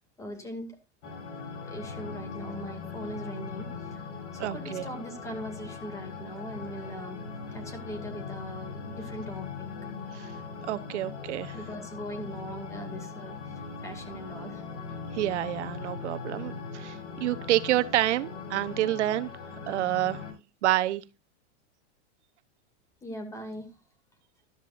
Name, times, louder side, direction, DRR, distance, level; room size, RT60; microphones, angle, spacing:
voice 1, 0.2-0.7 1.7-4.0 4.3-7.2 7.5-9.7 11.5-14.6 23.0-23.8, equal, 10° left, 2.3 m, -40 dB
sound 1, 1.0-20.3, left 4 dB, 90° left, 7.8 m, -40 dB
voice 2, 4.4-4.8 10.1-10.3 10.7-11.6 15.1-19.3 19.7-20.2 20.6-21.0, right 14 dB, 85° right, 1.0 m, -28 dB
13.5 x 13.0 x 2.6 m
supercardioid pair, 170°, 34 cm